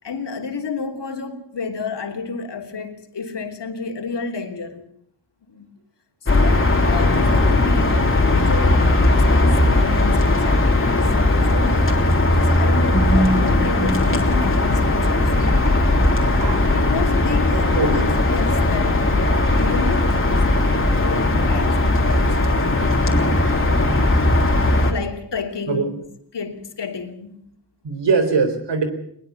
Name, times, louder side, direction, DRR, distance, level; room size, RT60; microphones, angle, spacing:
voice 1, 0.0-4.9 5.5-5.7 6.2-15.5 16.7-23.1 24.8-26.1 26.3-27.5, left 4 dB, 75° left, 4 dB, 3.1 m, -31 dB
sound 1, 6.3-24.9, left 2 dB, 30° left, 3.4 m, -18 dB
sound 2, 12.9-25.0, right 1 dB, 15° right, 5.2 m, -27 dB
voice 2, 16.4-16.8 17.5-18.1 25.7-25.9 27.8-28.8, right 4 dB, 75° right, 9 dB, 4.0 m, -22 dB
21.0 x 20.5 x 7.1 m, 0.68 s
wide cardioid pair, 125°, 42 cm